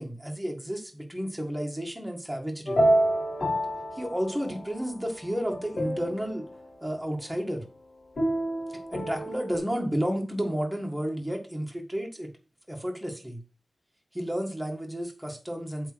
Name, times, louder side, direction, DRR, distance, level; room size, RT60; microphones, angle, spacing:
voice 1, 0.0-2.8 3.9-6.5 6.8-7.6 8.7-12.3 12.7-13.4 14.1-15.9, equal, 5° right, 1 dB, 1.7 m, -32 dB
sound 1, 2.7-4.8 5.3-6.4 8.2-9.6, right 1 dB, 65° left, 2.0 m, -28 dB
8.1 x 3.7 x 6.2 m, 0.34 s
wide cardioid pair, 115°, 0 cm